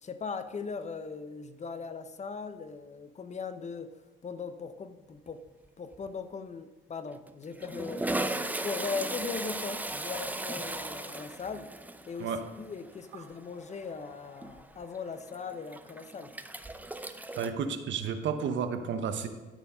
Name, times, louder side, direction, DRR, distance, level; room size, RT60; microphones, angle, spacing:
voice 1, 0.0-5.4 5.8-11.7 12.1-16.4, left 5 dB, 35° left, 11 dB, 0.7 m, -39 dB
Toilet flush, 5.3-5.7 5.9-6.1 7.1-17.5, right 1 dB, 10° right, 0.5 m, -37 dB
voice 2, 17.4-19.3, right 6 dB, 70° right, 9 dB, 0.9 m, -31 dB
12.0 x 4.5 x 5.5 m, 1.2 s
cardioid pair, 90°, 20 cm